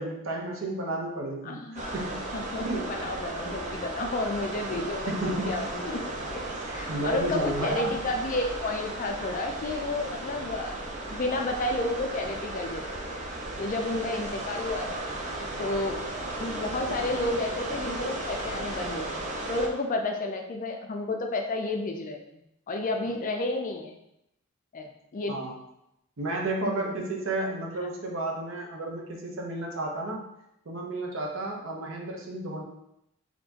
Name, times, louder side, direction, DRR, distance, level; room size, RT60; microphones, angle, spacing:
voice 1, 0.0-1.6 1.9-2.3 2.6-3.0 5.1-5.6 6.9-7.9 25.3-25.5 26.2-30.2 30.7-32.6, right 2 dB, 65° right, 0 dB, 0.8 m, -32 dB
voice 2, 1.4-2.0 2.3-6.0 6.3-6.4 6.7-10.7 11.1-12.8 13.6-15.0 15.6-16.0 16.4-22.4 22.7-24.0 24.7-25.3 26.6-26.9, left 2 dB, 40° left, 4 dB, 0.4 m, -31 dB
sound 1, 1.7-19.7, right 2 dB, 35° right, 0.5 m, -35 dB
4.3 x 2.9 x 2.8 m, 0.82 s
head